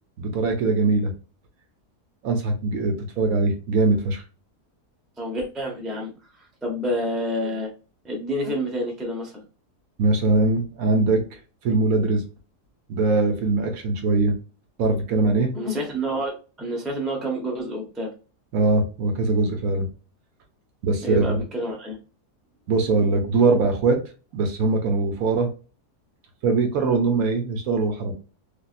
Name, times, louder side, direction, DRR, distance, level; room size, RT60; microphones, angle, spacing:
voice 1, 0.2-1.1 2.2-4.2 10.0-11.2 11.6-12.2 12.9-14.3 14.8-15.5 18.5-19.9 20.8-21.4 22.7-24.0 24.3-25.5 26.4-28.1, right 3 dB, 65° right, 4 dB, 1.0 m, -21 dB
voice 2, 5.2-6.1 6.6-7.7 8.0-9.4 15.5-18.1 21.0-22.0, equal, ahead, -1 dB, 0.4 m, -28 dB
3.4 x 2.4 x 2.4 m, 0.34 s
omnidirectional pair, 1.7 m